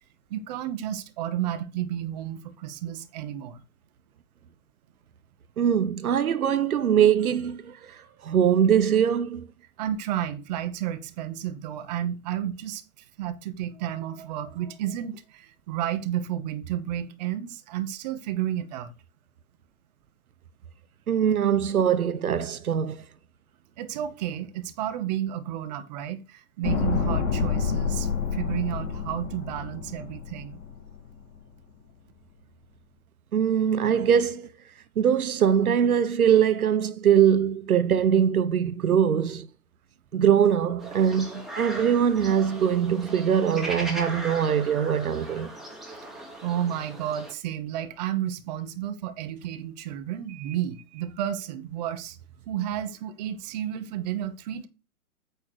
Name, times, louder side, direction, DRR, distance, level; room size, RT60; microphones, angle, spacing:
voice 1, 0.3-3.6 9.8-18.9 23.8-30.6 46.4-52.2 52.5-54.7, right 11 dB, 30° right, 0.9 m, -32 dB
voice 2, 5.6-9.5 21.1-23.0 33.3-34.5 35.0-39.5 40.1-45.5, right 8 dB, 75° right, 0.7 m, -22 dB
sound 1, 26.6-30.9 31.2-31.3, left 6 dB, 35° left, 2.6 m, -28 dB
sound 2, 40.8-47.3, right 1 dB, ahead, 1.2 m, -39 dB
8.8 x 3.2 x 6.6 m
figure-of-eight pair, 130°, 44 cm